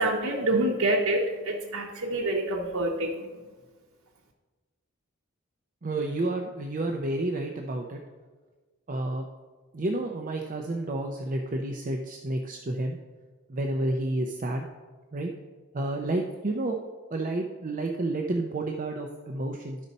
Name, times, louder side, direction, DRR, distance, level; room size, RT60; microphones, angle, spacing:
voice 1, 0.0-3.1, right 1 dB, 85° right, -2 dB, 0.9 m, -26 dB
voice 2, 5.8-8.0 8.9-9.3 9.7-13.0 13.5-14.7 15.1-15.3 15.7-16.8 17.1-19.8, right 2 dB, 40° right, 2 dB, 0.6 m, -30 dB
12.5 x 5.4 x 4.1 m, 1.4 s
head